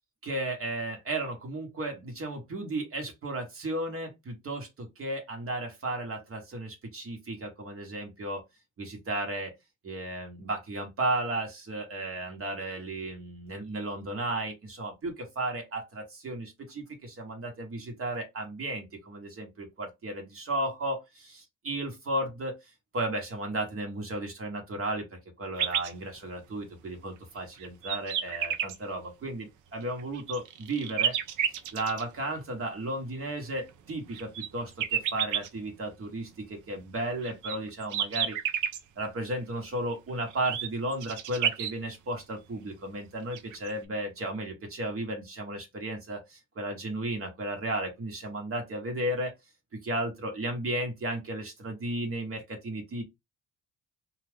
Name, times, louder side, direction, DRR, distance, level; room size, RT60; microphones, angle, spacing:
voice 1, 0.2-8.4 8.8-9.5 9.8-31.2 31.7-38.4 39.0-49.3 49.8-53.0, right 1 dB, 45° right, 1.1 m, -34 dB
sound 1, 25.6-25.9 26.6-26.7 27.4-28.8 29.8-32.0 33.7-35.5 37.0-38.8 40.3-41.7 43.0-43.1 43.3-43.7, right 9 dB, 85° right, 0.6 m, -30 dB
2.4 x 2.3 x 3.4 m
cardioid pair, 90°, 30 cm